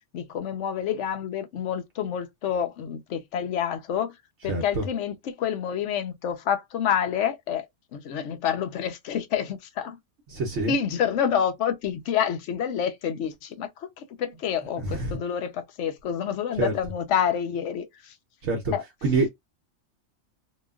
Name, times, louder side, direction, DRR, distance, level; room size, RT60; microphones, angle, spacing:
voice 1, 0.1-4.1 4.4-7.7 7.9-10.0 10.7-18.2 18.7-18.8, left 8 dB, 75° left, 0.9 m, -28 dB
voice 2, 4.4-4.9 10.3-10.7 14.8-15.2 16.6-16.8 18.4-19.3, right 3 dB, 70° right, 1.1 m, -27 dB
2.9 x 2.3 x 2.3 m
omnidirectional pair, 1.3 m